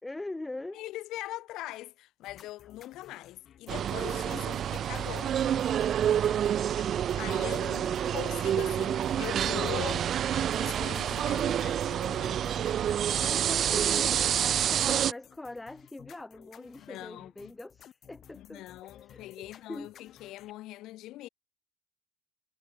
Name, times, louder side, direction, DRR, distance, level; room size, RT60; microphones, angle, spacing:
voice 1, 0.0-0.8 7.1-7.9 13.1-19.9, left 2 dB, 10° left, 4.7 m, -43 dB
voice 2, 0.7-5.5 7.1-12.5 16.8-17.5 18.3-21.3, left 16 dB, 70° left, 3.7 m, -42 dB
sound 1, 2.2-20.5, left 10 dB, 45° left, 6.7 m, -55 dB
sound 2, 3.7-15.1, right 10 dB, 45° right, 0.3 m, -28 dB
cardioid pair, 145°, 0 cm